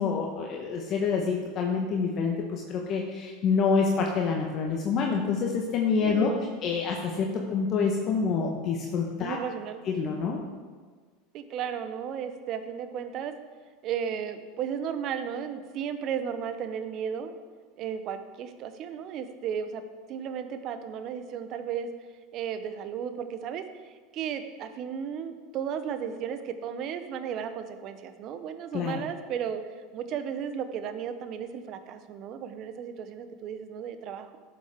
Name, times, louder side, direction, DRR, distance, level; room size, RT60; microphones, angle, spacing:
voice 1, 0.0-6.3 6.6-9.4 9.9-10.4 28.7-29.0, left 5 dB, 45° left, 0 dB, 1.1 m, -27 dB
voice 2, 6.0-6.5 9.2-9.8 11.3-13.3 13.8-17.3 17.8-19.8 20.1-21.9 22.3-23.6 24.1-29.6 29.9-34.4, right 8 dB, 50° right, 9 dB, 0.9 m, -34 dB
12.5 x 7.8 x 3.7 m, 1.5 s
hypercardioid pair, 85°, 0 cm